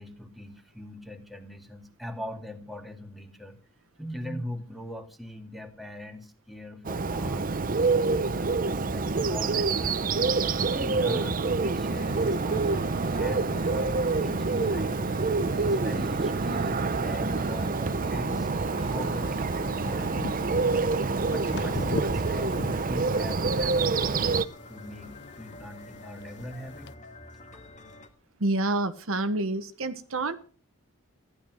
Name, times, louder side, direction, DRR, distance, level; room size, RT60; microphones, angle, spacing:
voice 1, 0.0-3.6 4.0-10.2 10.6-20.8 21.3-24.3 24.7-26.9, left 1 dB, ahead, 3 dB, 2.4 m, -41 dB
Bird, 6.8-24.4, right 3 dB, 40° right, 0.8 m, -27 dB
sound 1, 11.9-28.1, left 2 dB, 35° left, 1.9 m, -48 dB
sound 2, 18.7-26.9, left 3 dB, 55° left, 0.7 m, -41 dB
voice 2, 28.4-30.4, right 2 dB, 70° right, 10 dB, 1.2 m, -28 dB
15.0 x 11.5 x 6.2 m, 0.39 s
head